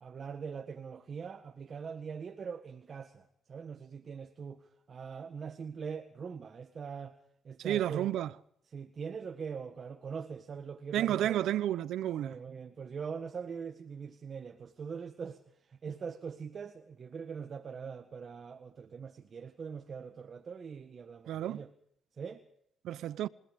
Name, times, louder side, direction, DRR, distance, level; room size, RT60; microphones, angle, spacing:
voice 1, 0.0-7.2 7.4-8.1 8.7-11.4 12.2-15.4 15.7-21.7 22.2-22.4, right 6 dB, 45° right, 1.6 m, -42 dB
voice 2, 7.6-8.3 10.9-12.4 21.3-21.6 22.8-23.3, right 12 dB, 80° right, 0.7 m, -31 dB
29.0 x 18.0 x 5.3 m
cardioid pair, 90°, 0 cm